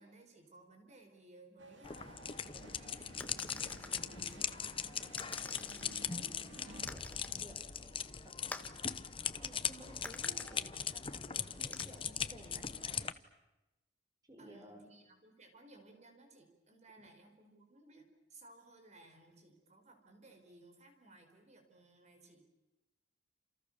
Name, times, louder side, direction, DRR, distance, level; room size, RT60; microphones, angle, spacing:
voice 1, 0.0-5.0 14.4-22.4, right 2 dB, 35° right, 4 dB, 5.4 m, -60 dB
sound 1, 1.6-6.9, right 2 dB, 75° right, 2.3 m, -56 dB
sound 2, 1.8-13.1, left 7 dB, 30° left, 1.0 m, -40 dB
sound 3, 3.2-4.0 5.2-6.0 6.9-7.4 8.5-8.8 10.0-10.5 11.7-11.8, left 2 dB, 10° left, 1.5 m, -47 dB
voice 2, 6.1-8.3 8.6-8.8 9.3-13.1 14.3-14.9 17.0-17.1, right 1 dB, 20° right, 5 dB, 4.4 m, -56 dB
30.0 x 28.5 x 7.0 m, 1.0 s
head